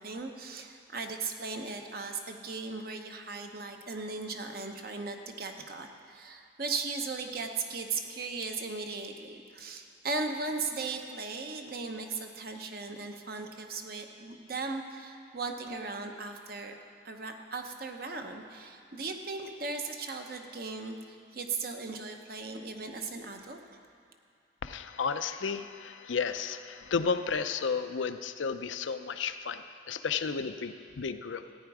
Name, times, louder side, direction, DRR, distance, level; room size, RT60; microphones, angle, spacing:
voice 1, 0.0-16.8 17.0-23.6, right 4 dB, 50° right, 4 dB, 0.9 m, -37 dB
voice 2, 24.6-31.4, left 5 dB, 85° left, 10 dB, 0.5 m, -33 dB
15.0 x 9.5 x 4.8 m, 2.3 s
head